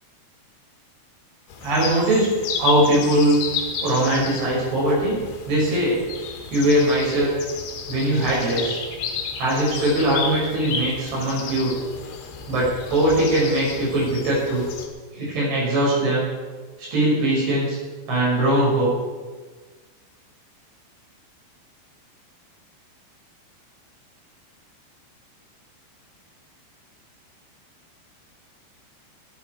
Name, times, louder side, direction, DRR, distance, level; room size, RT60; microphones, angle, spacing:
sound 1, 1.5-14.9, left 5 dB, 80° left, 4.2 m, -32 dB
voice 1, 1.6-2.3 2.6-3.4 3.8-5.2 5.5-6.0 6.5-7.3 7.9-8.8 9.4-11.7 12.5-14.7 15.1-16.3 16.8-17.8 18.1-18.9, right 1 dB, 70° right, -6 dB, 8.5 m, -21 dB
18.5 x 12.0 x 4.7 m, 1.4 s
omnidirectional pair, 5.4 m